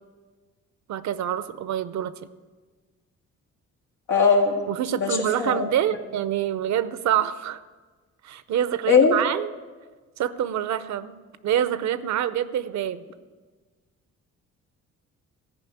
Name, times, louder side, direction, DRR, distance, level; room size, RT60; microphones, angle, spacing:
voice 1, 0.9-2.1 4.7-7.6 8.2-9.5 10.2-11.2 11.4-13.1, right 10 dB, 65° right, 14 dB, 0.7 m, -26 dB
voice 2, 4.1-4.5 4.9-5.7 8.9-9.1, left 5 dB, 90° left, 0 dB, 2.2 m, -19 dB
14.5 x 5.3 x 8.5 m, 1.4 s
cardioid pair, 90°, 30 cm